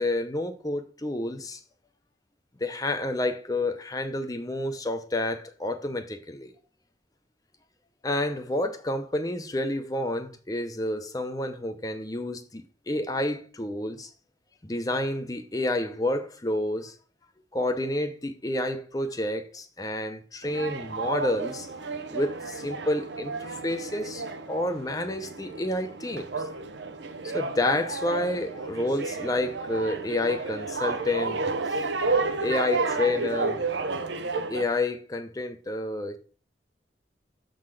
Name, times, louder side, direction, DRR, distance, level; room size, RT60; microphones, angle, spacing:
voice 1, 0.0-1.6 2.6-6.5 8.0-14.1 14.6-16.9 17.5-21.7 22.1-26.3 27.2-31.4 31.7-32.1 32.4-33.6 34.5-36.2, left 1 dB, 20° left, 0.6 m, -29 dB
sound 1, 20.4-34.6, right 3 dB, 90° right, 0.8 m, -32 dB
7.1 x 3.8 x 6.3 m
head